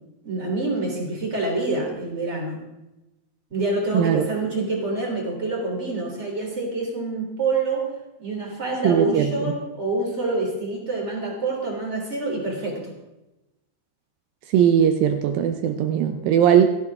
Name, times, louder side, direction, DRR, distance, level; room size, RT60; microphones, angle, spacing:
voice 1, 0.2-2.6 3.5-7.9 8.2-12.9, right 2 dB, 20° right, -1 dB, 3.5 m, -26 dB
voice 2, 8.8-9.5 14.5-16.7, right 9 dB, 80° right, 6 dB, 2.5 m, -19 dB
17.5 x 14.0 x 3.6 m, 0.97 s
omnidirectional pair, 4.2 m